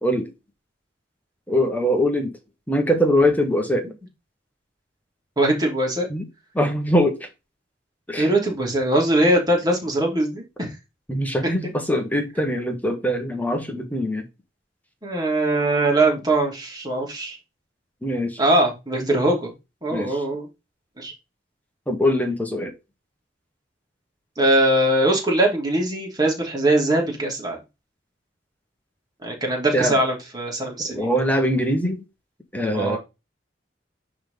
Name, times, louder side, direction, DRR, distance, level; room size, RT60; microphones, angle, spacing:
voice 1, 1.5-2.3 2.7-3.8 6.1-6.3 6.5-7.2 8.1-8.3 11.1-14.3 18.0-18.4 19.1-19.2 19.9-20.2 21.9-22.7 29.7-30.0 30.9-32.0 32.5-33.0, equal, 10° left, 1.5 m, -22 dB
voice 2, 5.4-6.1 8.2-10.7 15.0-17.4 18.4-19.5 19.8-20.5 21.0-21.1 24.4-27.6 29.2-31.1 32.7-33.0, right 1 dB, 20° right, 2.9 m, -21 dB
10.0 x 3.6 x 4.0 m
head